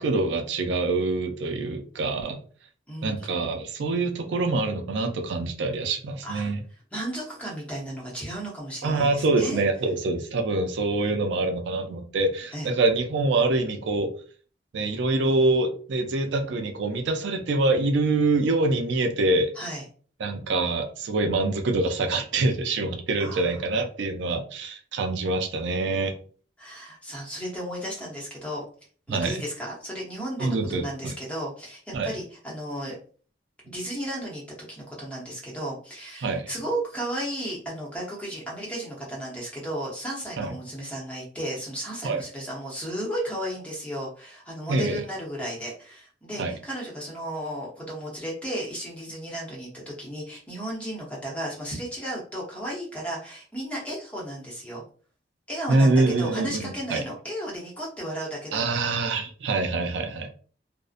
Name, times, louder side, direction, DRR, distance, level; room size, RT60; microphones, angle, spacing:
voice 1, 0.0-2.4 3.0-6.6 8.8-14.1 14.7-19.5 20.2-26.1 29.1-29.4 30.4-31.1 31.9-32.1 36.2-36.5 40.4-40.5 42.0-42.2 44.7-45.0 46.4-46.6 55.7-57.0 58.5-60.3, right 2 dB, 75° right, 5 dB, 0.4 m, -25 dB
voice 2, 2.9-3.3 6.2-6.5 6.9-9.6 12.5-12.7 19.5-19.8 23.2-23.6 26.6-28.6 29.1-33.0 33.7-54.8 55.5-58.7, right 1 dB, 5° left, -4 dB, 0.8 m, -34 dB
2.6 x 2.0 x 2.4 m, 0.42 s
head